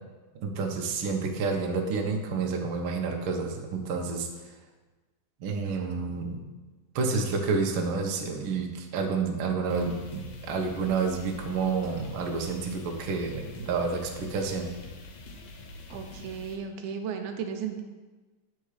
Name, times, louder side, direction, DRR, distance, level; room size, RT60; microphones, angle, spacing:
voice 1, 0.3-4.3 5.4-6.4 6.9-14.7, right 4 dB, 65° right, 2 dB, 1.3 m, -29 dB
sound 1, 9.7-16.6, left 2 dB, 90° left, 2.4 m, -45 dB
voice 2, 15.9-17.8, right 7 dB, 90° right, 5 dB, 2.2 m, -35 dB
8.0 x 4.5 x 4.8 m, 1.2 s
omnidirectional pair, 3.3 m